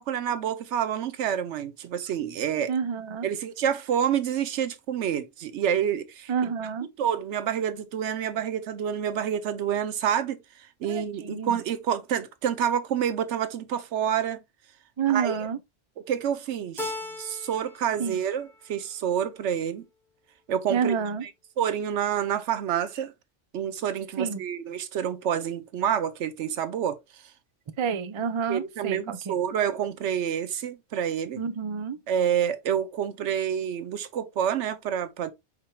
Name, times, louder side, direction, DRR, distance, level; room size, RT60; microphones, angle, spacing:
voice 1, 0.0-2.7 3.2-6.3 7.0-10.4 10.8-14.4 15.1-15.4 16.1-19.8 20.5-21.0 21.2-21.3 21.6-23.1 23.5-27.0 28.5-31.4 32.1-35.3, right 9 dB, 70° right, 0.9 m, -28 dB
voice 2, 2.7-3.3 6.3-6.9 10.8-11.6 15.0-15.6 18.0-18.2 20.7-21.2 24.2-24.4 27.8-29.3 31.4-32.0, right 6 dB, 55° right, 0.3 m, -29 dB
Keyboard (musical), 16.8-17.9 18.2-18.9, left 2 dB, ahead, 0.7 m, -37 dB
4.9 x 4.4 x 2.3 m
omnidirectional pair, 1.3 m